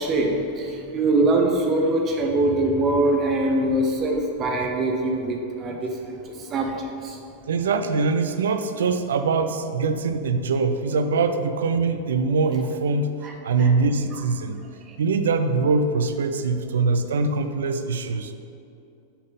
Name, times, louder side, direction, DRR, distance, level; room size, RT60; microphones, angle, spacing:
voice 1, 0.0-7.2 13.2-13.3 13.6-13.7 14.9-15.0, right 2 dB, 30° right, 2 dB, 0.7 m, -23 dB
voice 2, 7.5-13.1 13.4-14.6 15.0-18.3, right 4 dB, 65° right, 8 dB, 0.4 m, -23 dB
6.9 x 3.7 x 5.3 m, 2.6 s
figure-of-eight pair, 90°, 0 cm